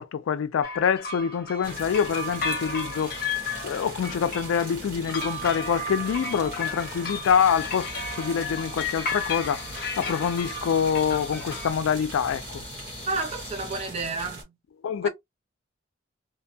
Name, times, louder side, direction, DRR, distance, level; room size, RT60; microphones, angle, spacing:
voice 1, 0.0-3.1 3.6-7.9 8.2-9.6 10.0-12.6 14.8-15.1, left 7 dB, 85° left, 0.3 m, -25 dB
sound 1, 0.6-11.7, left 3 dB, 50° left, 0.7 m, -34 dB
sound 2, 1.6-14.4, right 2 dB, 45° right, 1.2 m, -41 dB
sound 3, 7.4-13.8, left 4 dB, 25° left, 0.9 m, -44 dB
voice 2, 13.1-14.5 15.0-15.1, right 3 dB, 30° right, 0.5 m, -30 dB
2.6 x 2.2 x 2.6 m
head